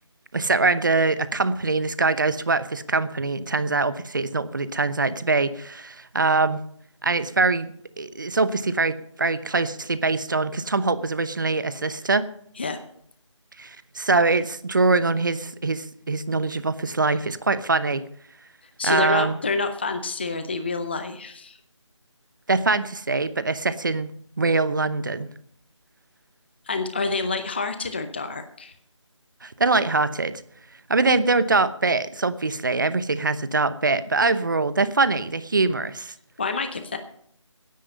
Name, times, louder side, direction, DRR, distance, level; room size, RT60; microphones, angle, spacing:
voice 1, 0.3-6.6 7.0-7.7 8.0-12.3 13.6-18.0 18.8-19.4 22.5-24.1 24.4-25.3 29.4-30.3 30.9-36.1, right 3 dB, 40° right, 14 dB, 0.8 m, -23 dB
voice 2, 18.8-21.6 26.7-28.7 36.4-37.0, left 4 dB, 20° left, 9 dB, 0.7 m, -28 dB
15.5 x 10.5 x 5.4 m, 0.65 s
figure-of-eight pair, 170°, 16 cm